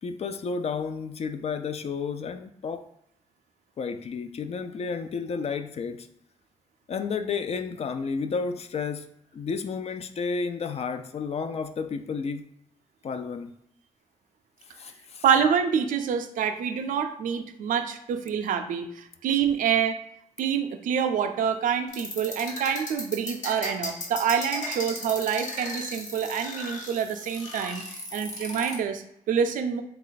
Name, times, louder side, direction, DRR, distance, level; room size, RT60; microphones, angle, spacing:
voice 1, 0.0-2.9 3.8-6.1 6.9-12.5 13.0-13.5 14.8-15.2, left 5 dB, 50° left, 9 dB, 0.4 m, -31 dB
voice 2, 15.2-20.0 20.4-27.8 28.1-29.8, right 7 dB, 85° right, 7 dB, 0.4 m, -26 dB
sound 1, 21.9-28.8, left 2 dB, 65° left, 1.2 m, -35 dB
3.3 x 2.4 x 3.9 m, 0.74 s
cardioid pair, 60°, 13 cm